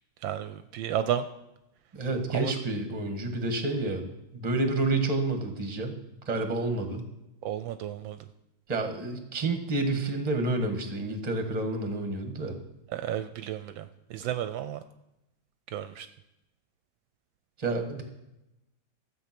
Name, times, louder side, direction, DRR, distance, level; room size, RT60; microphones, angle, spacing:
voice 1, 0.2-1.3 2.3-2.5 7.4-8.2 12.9-14.8 15.7-16.1, right 10 dB, 75° right, 10 dB, 1.3 m, -32 dB
voice 2, 1.9-4.1 4.3-6.0 6.3-7.0 8.7-12.6 17.6-18.0, right 2 dB, 20° right, 6 dB, 1.3 m, -29 dB
13.0 x 7.8 x 6.0 m, 0.92 s
omnidirectional pair, 2.2 m